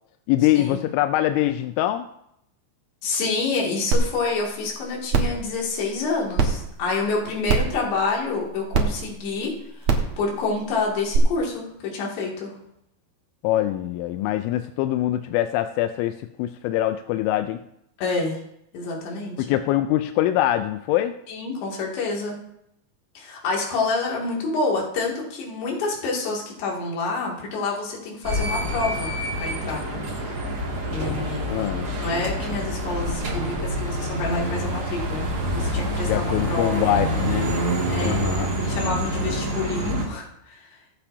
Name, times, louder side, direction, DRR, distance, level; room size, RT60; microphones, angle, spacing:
voice 1, 0.3-2.1 13.4-17.6 19.4-21.2 31.5-31.9 36.0-37.6 38.0-38.5, left 13 dB, 90° left, 9 dB, 3.0 m, -23 dB
voice 2, 3.0-12.6 18.0-18.4 18.7-19.6 21.3-22.4 23.2-29.1 29.4-30.4 30.9-31.7 32.0-37.0 37.9-38.3 38.6-40.8, left 3 dB, 70° left, -2 dB, 4.4 m, -28 dB
sound 1, 3.9-4.0 4.5-4.6 5.1-5.4 6.4-6.5 7.5-7.7 8.7-8.8 9.8-10.1 11.1-11.2, right 5 dB, 80° right, 1.5 m, -20 dB
sound 2, 28.2-40.1, equal, 40° right, 2.2 m, -27 dB
23.5 x 8.6 x 2.7 m, 0.78 s
omnidirectional pair, 5.4 m